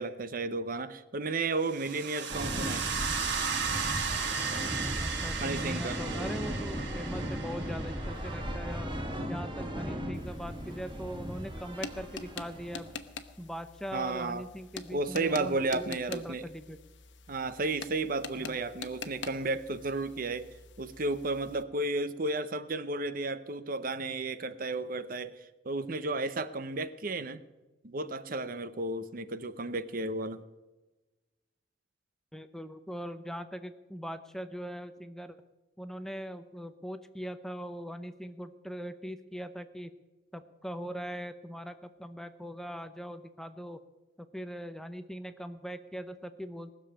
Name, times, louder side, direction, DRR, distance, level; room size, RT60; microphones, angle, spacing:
voice 1, 0.0-2.8 5.4-6.0 13.9-14.5 14.9-16.4 17.3-20.5 20.8-27.4 27.8-30.4, right 2 dB, 50° right, 0.8 m, -33 dB
sound 1, 1.6-8.5, right 5 dB, 70° right, 1.7 m, -35 dB
sound 2, 2.3-13.0, equal, 25° right, 2.0 m, -37 dB
voice 2, 5.0-8.9 9.3-12.9 13.4-16.8 18.4-18.6 32.3-35.4 35.8-39.9 40.3-43.8 44.2-46.8, equal, ahead, 0.6 m, -41 dB
sound 3, 10.1-21.6, left 4 dB, 80° left, 1.1 m, -46 dB
19.5 x 7.0 x 8.8 m
head